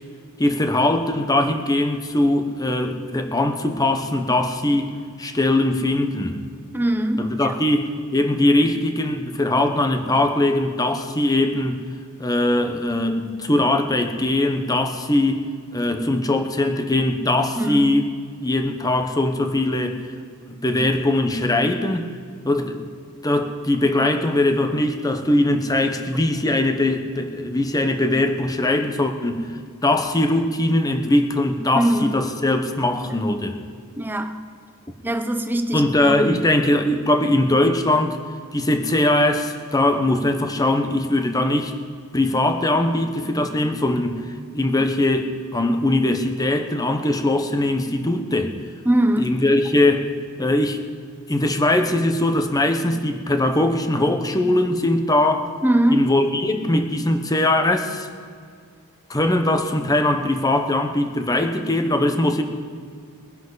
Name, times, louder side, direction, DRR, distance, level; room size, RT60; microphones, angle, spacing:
voice 1, 0.4-4.9 5.2-6.4 7.2-11.8 12.2-15.4 15.7-18.1 18.4-20.0 20.5-22.1 22.4-22.8 23.2-29.5 29.8-33.6 35.7-38.2 38.5-41.7 42.1-44.3 44.5-48.6 49.2-50.8 51.3-55.5 55.9-58.1 59.1-62.4, left 1 dB, 15° left, 6 dB, 1.0 m, -21 dB
voice 2, 6.7-7.5 17.6-18.0 31.7-32.3 34.0-34.4 35.0-36.4 48.8-49.3 55.6-56.1, right 1 dB, 10° right, 7 dB, 0.8 m, -22 dB
22.5 x 10.5 x 4.0 m, 2.1 s
head